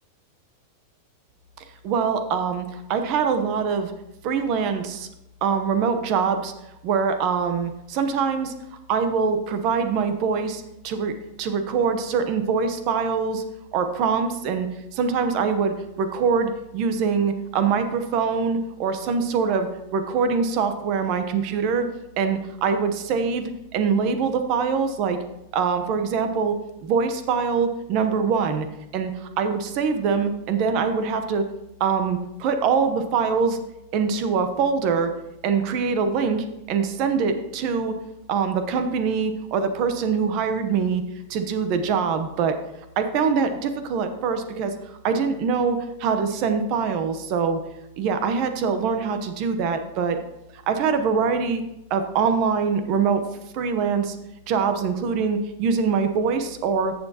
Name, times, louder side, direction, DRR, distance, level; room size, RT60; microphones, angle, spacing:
voice 1, 1.8-3.9 4.2-5.1 5.4-6.5 6.8-8.5 8.9-11.1 11.4-13.4 13.7-14.7 14.9-21.9 22.2-25.2 25.5-26.5 26.8-28.7 28.9-31.4 31.8-33.6 33.9-35.1 35.4-37.9 38.3-41.0 41.3-42.5 43.0-47.6 48.0-50.2 50.7-51.6 51.9-53.2 53.5-54.2 54.5-56.9, right 5 dB, 35° right, 8 dB, 0.9 m, -23 dB
14.5 x 6.9 x 2.9 m, 0.92 s
supercardioid pair, 175°, 0 cm